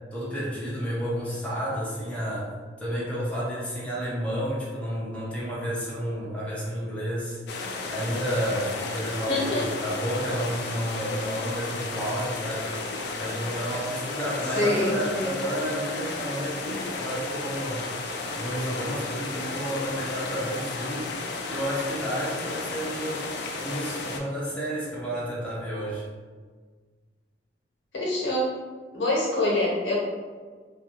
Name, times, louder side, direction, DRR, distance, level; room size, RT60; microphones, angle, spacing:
voice 1, 0.1-2.5 2.8-7.4 7.9-12.7 13.1-17.8 18.3-21.2 21.5-23.2 23.6-26.1, equal, 5° left, -7 dB, 0.6 m, -31 dB
sound 1, 7.5-24.2, left 3 dB, 65° left, 0.4 m, -33 dB
voice 2, 9.3-9.6 14.5-15.3 27.9-28.5 28.9-30.0, left 1 dB, 85° left, -4 dB, 0.9 m, -25 dB
2.3 x 2.3 x 2.9 m, 1.5 s
head